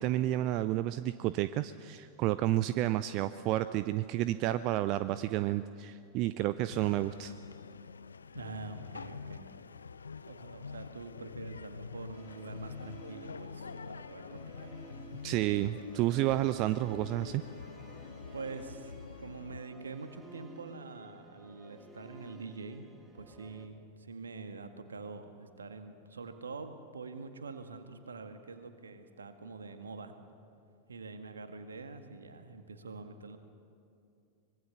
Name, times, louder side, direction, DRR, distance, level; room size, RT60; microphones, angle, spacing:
voice 1, 0.0-7.3 15.2-17.4, right 14 dB, 40° right, 14 dB, 0.5 m, -30 dB
sound 1, 6.7-19.6, left 5 dB, 75° left, 0.6 m, -46 dB
voice 2, 8.3-9.4 10.2-14.7 18.3-22.8 23.1-30.1 30.9-33.4, right 4 dB, 70° right, 8 dB, 1.8 m, -45 dB
Musical instrument, 12.1-23.7, right 2 dB, 10° right, 2.7 m, -54 dB
24.5 x 21.5 x 6.9 m, 2.6 s
figure-of-eight pair, 90°, 0 cm